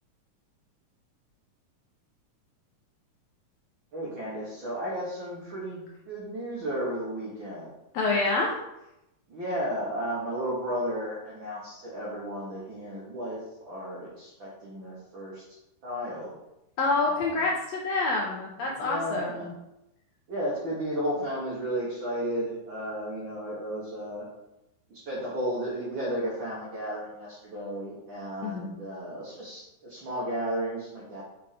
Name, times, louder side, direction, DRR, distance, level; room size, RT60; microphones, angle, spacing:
voice 1, 3.9-7.7 9.3-13.4 13.6-15.4 15.8-16.3 17.0-17.4 18.6-19.5 20.3-24.2 24.9-31.2, equal, 55° right, -6 dB, 1.4 m, -33 dB
voice 2, 7.9-8.5 16.8-19.3 28.4-28.7, left 3 dB, 75° left, -1 dB, 1.6 m, -27 dB
7.2 x 3.5 x 4.9 m, 0.89 s
omnidirectional pair, 3.8 m